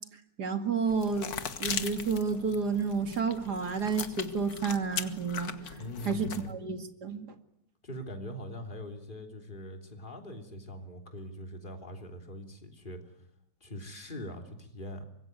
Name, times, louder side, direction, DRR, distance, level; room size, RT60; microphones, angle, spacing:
voice 1, 0.4-1.3 1.6-5.5 6.1-7.3, right 5 dB, 75° right, 8 dB, 2.8 m, -30 dB
sound 1, 0.9-6.5, left 6 dB, 65° left, 2.0 m, -39 dB
voice 2, 5.8-6.6 7.8-13.1 13.6-15.0, left 1 dB, 30° left, 4 dB, 3.5 m, -42 dB
25.0 x 22.0 x 9.6 m, 0.76 s
omnidirectional pair, 1.8 m